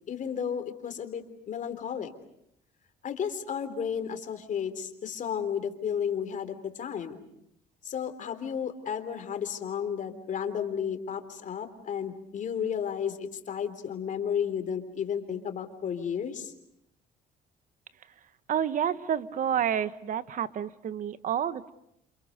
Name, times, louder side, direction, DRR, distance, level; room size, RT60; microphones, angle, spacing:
voice 1, 0.1-2.1 3.0-7.2 7.8-16.5, left 8 dB, 50° left, 9 dB, 3.5 m, -33 dB
voice 2, 18.5-21.7, right 9 dB, 50° right, 14 dB, 1.4 m, -29 dB
28.5 x 28.5 x 6.6 m, 0.77 s
cardioid pair, 110°, 17 cm